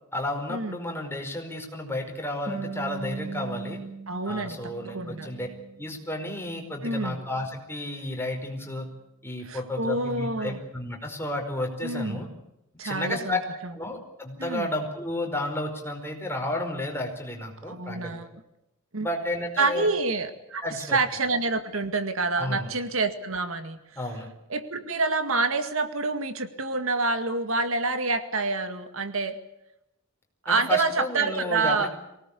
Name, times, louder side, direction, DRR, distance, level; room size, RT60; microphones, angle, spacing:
voice 1, 0.1-3.8 4.3-5.5 5.8-8.9 9.2-12.3 12.8-13.4 13.7-18.1 19.0-19.9 20.6-21.0 22.4-22.7 23.9-24.3 30.5-32.0, left 1 dB, 10° left, 2 dB, 5.0 m, -32 dB
Harp, 2.5-5.8 6.2-7.3, right 4 dB, 35° right, 4.6 m, -39 dB
voice 2, 4.1-5.3 6.8-7.2 9.4-10.6 11.8-12.2 12.8-13.4 14.4-14.7 17.7-18.3 18.9-19.1 19.6-20.6 20.9-23.8 24.5-29.4 30.5-31.9, right 3 dB, 70° right, 9 dB, 2.0 m, -27 dB
24.0 x 18.5 x 8.5 m, 0.86 s
head